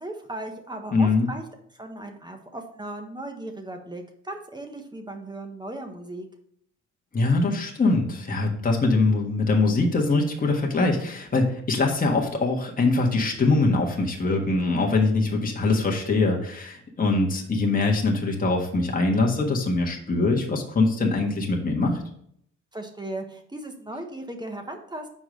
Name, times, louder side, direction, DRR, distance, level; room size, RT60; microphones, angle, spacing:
voice 1, 0.0-1.4 1.7-6.3 22.7-25.1, right 1 dB, 15° right, 4 dB, 1.2 m, -37 dB
voice 2, 0.9-1.3 7.1-22.0, left 3 dB, 30° left, 0 dB, 1.5 m, -23 dB
6.1 x 4.8 x 5.2 m, 0.66 s
cardioid pair, 90°, 30 cm